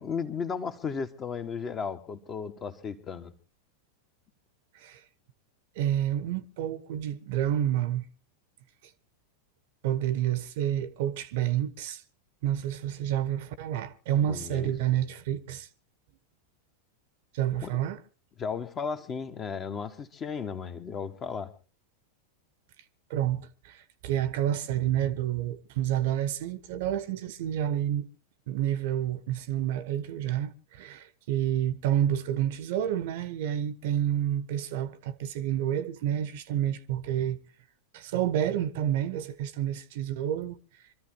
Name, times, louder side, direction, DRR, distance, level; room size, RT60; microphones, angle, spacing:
voice 1, 0.0-3.3 14.2-14.7 17.6-17.7 18.4-21.5, left 6 dB, 25° left, 1.4 m, -35 dB
voice 2, 5.8-8.0 9.8-12.0 12.4-15.7 17.3-18.0 23.1-28.1 28.5-37.4 37.9-40.6, right 11 dB, 50° right, 1.0 m, -29 dB
26.5 x 14.0 x 2.9 m
figure-of-eight pair, 90°, 0 cm